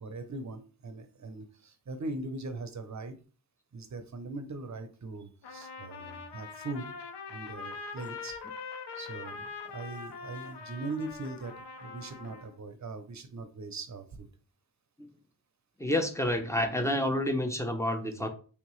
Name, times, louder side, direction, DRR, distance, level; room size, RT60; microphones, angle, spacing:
voice 1, 0.0-3.1 3.7-6.8 7.3-8.4 9.0-11.5 11.8-14.3 18.1-18.3, right 3 dB, 45° right, 8 dB, 0.6 m, -40 dB
Trumpet, 5.4-12.6, left 5 dB, 70° left, 0.6 m, -43 dB
voice 2, 15.8-18.3, left 1 dB, 5° left, 6 dB, 0.6 m, -29 dB
3.4 x 2.8 x 3.1 m, 0.38 s
wide cardioid pair, 60°, 42 cm